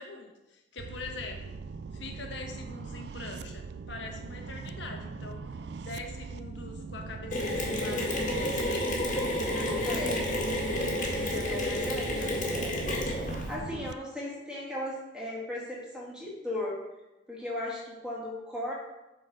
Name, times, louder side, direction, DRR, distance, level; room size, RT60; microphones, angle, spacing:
voice 1, 0.0-1.6 1.9-5.4 5.8-10.1 11.2-12.4, left 3 dB, 70° left, 2 dB, 1.3 m, -43 dB
sound 1, 0.8-13.9, right 4 dB, 55° right, 0.3 m, -41 dB
Mechanisms, 7.3-13.5, left 1 dB, 40° left, 1.8 m, -30 dB
voice 2, 9.8-10.2 11.5-12.4 13.2-16.8 17.3-18.7, left 1 dB, 5° right, -5 dB, 2.2 m, -36 dB
8.5 x 4.2 x 6.3 m, 1.0 s
head